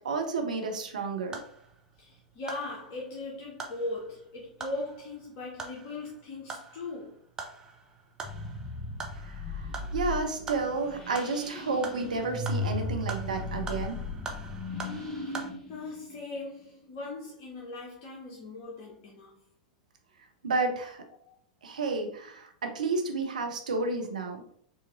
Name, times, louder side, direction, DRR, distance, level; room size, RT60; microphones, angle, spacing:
voice 1, 0.0-1.4 9.2-14.0 20.4-21.0 21.6-24.4, right 3 dB, 70° right, 0.8 m, -31 dB
sound 1, 0.8-15.5, right 4 dB, 15° right, 0.7 m, -45 dB
voice 2, 2.0-7.2 14.9-15.4 15.7-19.4 21.2-21.4, left 2 dB, 45° left, 0.8 m, -39 dB
sound 2, 8.2-16.8, left 2 dB, 15° left, 0.9 m, -37 dB
4.8 x 2.9 x 2.6 m
figure-of-eight pair, 90°, 4 cm